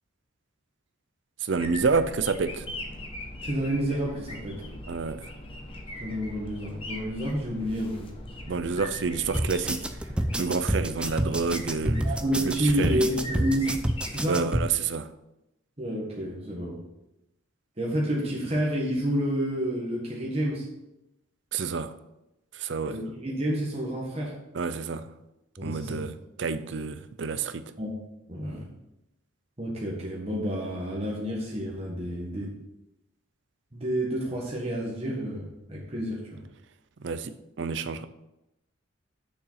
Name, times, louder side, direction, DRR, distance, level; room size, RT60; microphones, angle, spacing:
voice 1, 1.4-2.6 4.9-5.2 8.5-9.9 10.4-12.1 12.4-13.1 14.3-15.1 21.5-21.9 22.5-23.0 24.5-25.1 25.6-27.7 37.0-38.1, right 4 dB, 65° right, 0.5 m, -29 dB
sound 1, 1.5-14.2, left 1 dB, 25° left, 1.0 m, -41 dB
voice 2, 3.4-4.7 6.0-8.1 12.0-13.7 14.1-14.5 15.8-16.8 17.8-20.7 22.8-24.3 25.6-26.0 27.8-27.9 28.3-28.7 29.6-32.5 33.7-36.4, equal, 30° right, 1.5 m, -29 dB
sound 2, 9.3-14.7, right 1 dB, 5° right, 0.4 m, -28 dB
6.6 x 5.7 x 5.6 m
head